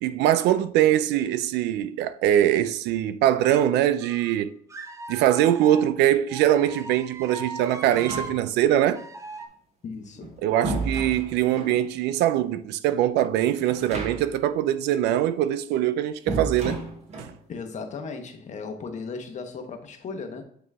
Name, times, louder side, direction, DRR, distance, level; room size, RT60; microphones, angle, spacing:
voice 1, 0.0-4.5 5.1-9.0 10.4-16.8 17.2-17.3, right 12 dB, 85° right, 0.5 m, -22 dB
sound 1, 4.0-4.3 4.7-5.9 6.3-8.4 8.9-9.5, right 3 dB, 15° right, 0.8 m, -39 dB
sound 2, 7.8-8.7 10.0-11.8 13.6-14.5 14.7-14.8 16.3-17.4, right 2 dB, 40° right, 1.4 m, -33 dB
voice 2, 9.8-10.5 17.5-20.4, left 4 dB, 45° left, 1.1 m, -36 dB
8.8 x 3.0 x 3.5 m
cardioid pair, 110°, 17 cm